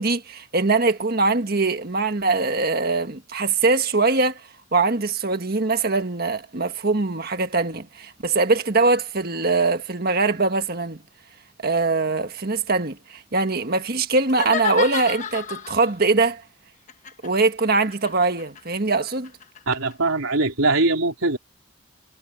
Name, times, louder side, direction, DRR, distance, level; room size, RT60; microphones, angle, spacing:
voice 1, 0.0-4.4 4.7-11.0 11.6-16.4 17.2-19.3, right 3 dB, 45° right, 1.7 m, -22 dB
sound 1, 14.3-16.0 16.9-19.9, left 6 dB, 35° left, 1.3 m, -32 dB
voice 2, 19.7-21.4, right 2 dB, 85° right, 3.6 m, -21 dB
head